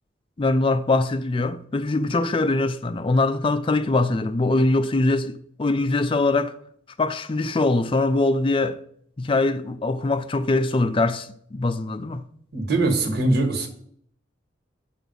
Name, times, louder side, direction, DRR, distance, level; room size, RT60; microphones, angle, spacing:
voice 1, 0.4-6.5 7.0-8.8 9.2-12.2, left 2 dB, 30° left, 0.4 m, -22 dB
voice 2, 12.5-13.7, right 2 dB, 55° right, 1.5 m, -22 dB
9.0 x 6.2 x 5.4 m
head